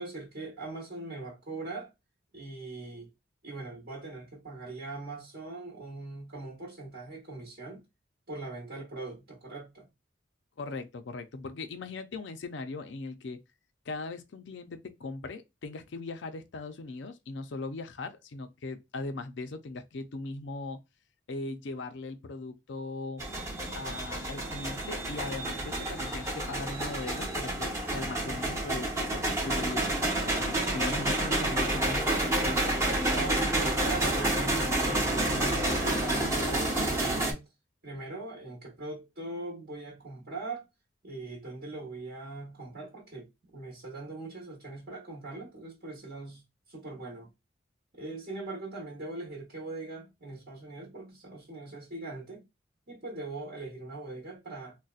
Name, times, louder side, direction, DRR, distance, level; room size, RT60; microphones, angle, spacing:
voice 1, 0.0-1.9 2.3-3.1 3.4-7.8 8.3-9.9 33.1-37.4 37.8-40.6 41.0-43.3 43.5-46.4 46.7-47.3 47.9-52.5 52.9-54.8, right 2 dB, 55° right, 1.0 m, -41 dB
voice 2, 10.6-13.4 13.9-20.8 21.3-23.2 23.7-32.1, left 3 dB, 70° left, 0.5 m, -39 dB
sound 1, 23.2-37.3, right 1 dB, 15° right, 0.7 m, -29 dB
4.0 x 2.1 x 2.4 m
head